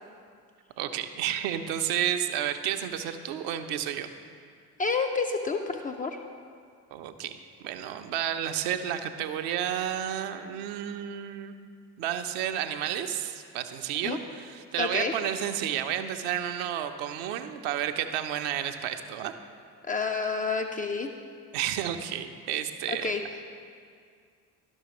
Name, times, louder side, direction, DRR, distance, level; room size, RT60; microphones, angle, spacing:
voice 1, 0.8-4.1 6.9-7.4 7.6-11.5 12.0-19.3 21.5-23.1, right 10 dB, 60° right, 8 dB, 0.6 m, -31 dB
voice 2, 4.8-6.2 14.0-14.2 14.8-15.1 19.9-21.1 22.9-23.2, left 4 dB, 20° left, 4 dB, 0.3 m, -29 dB
12.0 x 6.2 x 3.0 m, 2.2 s
figure-of-eight pair, 45°, 46 cm